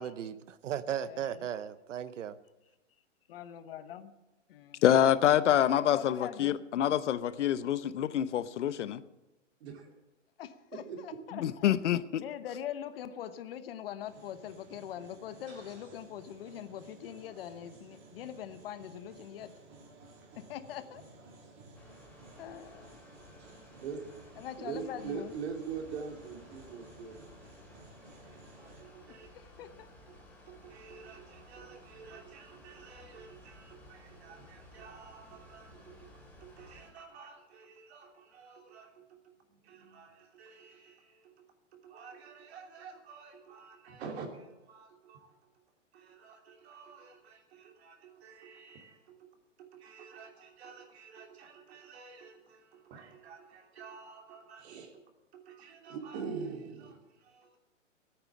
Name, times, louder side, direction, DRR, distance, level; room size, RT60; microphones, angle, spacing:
voice 1, 0.0-2.4, right 9 dB, 75° right, 15 dB, 0.9 m, -36 dB
voice 2, 3.3-4.1 4.5-4.8 5.6-6.6 10.4-11.4 12.2-19.5 20.5-21.0 22.4-23.0 24.4-25.3 29.3-29.9, left 10 dB, 50° left, 12 dB, 1.0 m, -42 dB
voice 3, 4.8-9.0 11.4-12.2, left 10 dB, 70° left, 16 dB, 0.8 m, -26 dB
voice 4, 9.6-9.9 10.7-11.0 23.8-24.1 24.6-27.2 28.3-29.3 30.1-36.1 36.4-45.4 45.9-49.3 49.6-55.0 55.3-57.6, right 6 dB, 55° right, 3 dB, 3.0 m, -46 dB
sound 1, 14.0-28.8, right 3 dB, 30° right, 2.9 m, -55 dB
sound 2, 21.7-36.9, left 1 dB, 5° left, 3.3 m, -56 dB
14.0 x 9.0 x 7.4 m, 1.0 s
hypercardioid pair, 150°, 37 cm